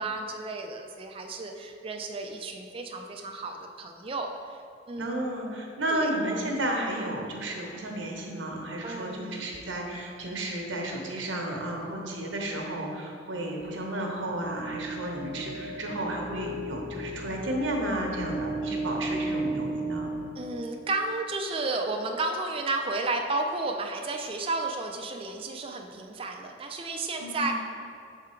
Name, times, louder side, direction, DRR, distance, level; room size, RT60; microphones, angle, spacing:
voice 1, 0.0-4.3 4.9-5.3 5.9-6.1 8.8-9.5 20.4-27.5, right 2 dB, 30° right, 3 dB, 0.4 m, -32 dB
voice 2, 5.0-20.2 27.2-27.5, right 1 dB, 80° right, 0 dB, 1.0 m, -32 dB
sound 1, 14.2-21.2, right 2 dB, 40° left, 0.8 m, -35 dB
6.6 x 3.7 x 4.4 m, 2.5 s
head